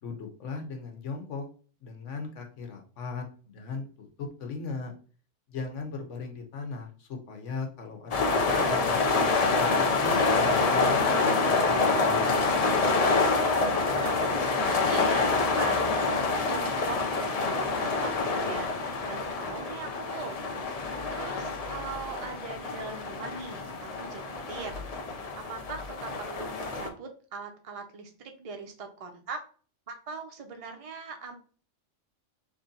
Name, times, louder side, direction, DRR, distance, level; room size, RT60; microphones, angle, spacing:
voice 1, 0.0-1.5 1.8-4.9 5.5-9.0 9.4-12.5, left 4 dB, 75° left, 3 dB, 1.2 m, -38 dB
sound 1, 8.1-26.9, left 3 dB, 55° left, 0.4 m, -27 dB
voice 2, 13.1-25.0 25.5-29.4 29.9-31.4, right 4 dB, 35° right, 4 dB, 0.6 m, -41 dB
3.2 x 2.7 x 3.8 m, 0.41 s
omnidirectional pair, 1.3 m